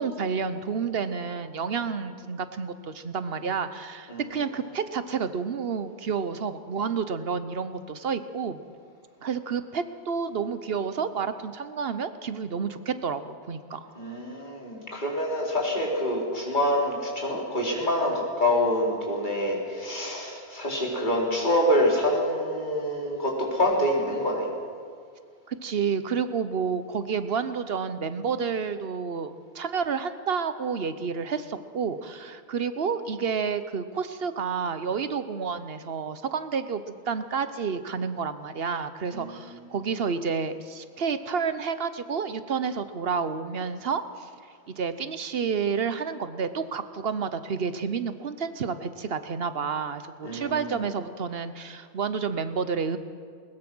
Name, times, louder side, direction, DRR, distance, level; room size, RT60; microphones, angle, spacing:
voice 1, 0.0-8.6 9.2-13.9 25.5-44.3 44.7-53.0, right 6 dB, 70° right, 11 dB, 1.1 m, -30 dB
voice 2, 14.0-24.5 39.1-39.3 50.2-50.7, left 1 dB, 45° left, -2 dB, 4.1 m, -26 dB
21.0 x 20.0 x 6.2 m, 2.1 s
omnidirectional pair, 1.1 m